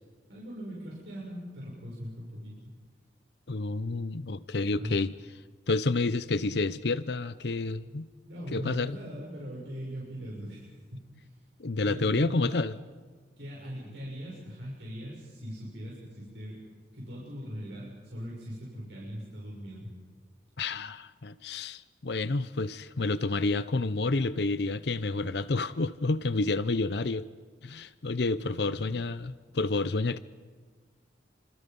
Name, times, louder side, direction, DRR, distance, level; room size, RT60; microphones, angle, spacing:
voice 1, 0.3-2.7 4.8-5.0 8.2-11.4 11.8-12.5 13.4-16.6 16.9-19.9 28.4-29.0, equal, 80° right, 6.7 m, -40 dB
voice 2, 3.5-5.1 5.7-8.1 8.5-9.0 11.6-12.7 20.6-27.3 27.6-30.2, left 3 dB, 70° left, 0.7 m, -29 dB
28.5 x 26.0 x 5.4 m
head